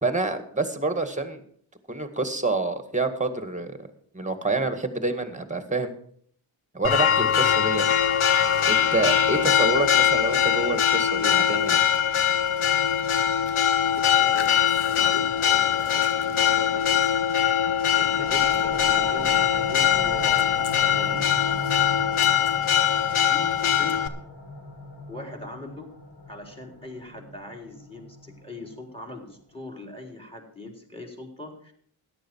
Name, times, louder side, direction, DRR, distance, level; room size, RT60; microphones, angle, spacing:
voice 1, 0.0-1.4 1.9-3.9 4.1-5.9 6.7-7.8 8.7-11.8, right 3 dB, 15° right, 8 dB, 1.9 m, -27 dB
Church bell, 6.8-24.1, left 9 dB, 75° left, 1.1 m, -22 dB
voice 2, 13.9-14.5 14.9-16.0 16.3-17.1 18.0-20.4 20.7-21.3 23.1-24.0 25.1-25.9 26.3-31.7, left 1 dB, 10° left, 2 dB, 4.1 m, -41 dB
sound 1, 17.8-29.2, left 1 dB, 55° left, 5.6 m, -38 dB
13.5 x 10.5 x 4.7 m, 0.62 s
cardioid pair, 60°, 49 cm